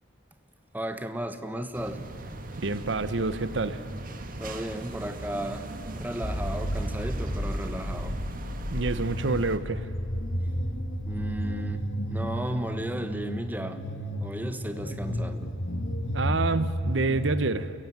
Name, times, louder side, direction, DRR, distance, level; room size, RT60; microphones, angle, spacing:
voice 1, 0.7-2.0 4.4-8.2 11.0-11.8 12.1-13.8 14.2-15.5, right 1 dB, 10° right, 9 dB, 1.3 m, -34 dB
sound 1, 1.7-9.6, right 1 dB, 45° right, 1.9 m, -39 dB
voice 2, 2.6-3.8 8.7-9.9 16.1-17.7, right 3 dB, 65° right, 14 dB, 0.9 m, -27 dB
sound 2, 6.2-17.3, equal, 80° left, 1.9 m, -32 dB
28.5 x 16.5 x 9.3 m, 2.9 s
head